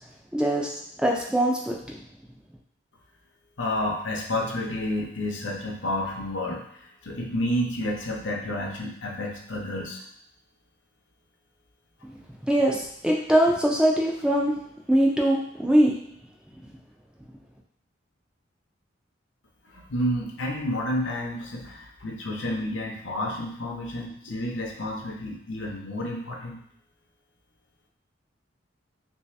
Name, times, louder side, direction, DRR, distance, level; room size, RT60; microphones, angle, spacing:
voice 1, 0.3-0.7 1.0-1.8 12.0-12.2 12.5-14.5 14.9-15.9, right 1 dB, 5° right, -2 dB, 0.3 m, -22 dB
voice 2, 3.6-10.0 19.7-26.6, left 1 dB, 70° left, 0 dB, 0.7 m, -30 dB
3.2 x 2.7 x 3.2 m, 0.73 s
head